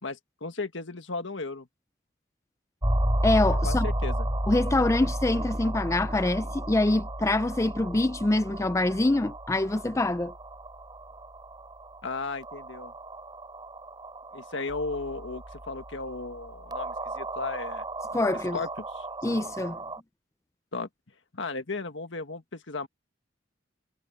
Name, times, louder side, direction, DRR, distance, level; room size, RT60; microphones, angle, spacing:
voice 1, 0.0-1.7 3.6-4.2 12.0-12.9 14.3-17.8 18.5-18.7 18.9-19.1 20.7-20.9 21.3-22.9, left 3 dB, 75° left, 1.8 m, -35 dB
sound 1, 2.8-20.0, right 1 dB, 25° right, 4.4 m, -33 dB
voice 2, 3.2-3.9 4.5-10.3 18.1-18.6 19.2-19.8, left 2 dB, 15° left, 0.4 m, -25 dB
head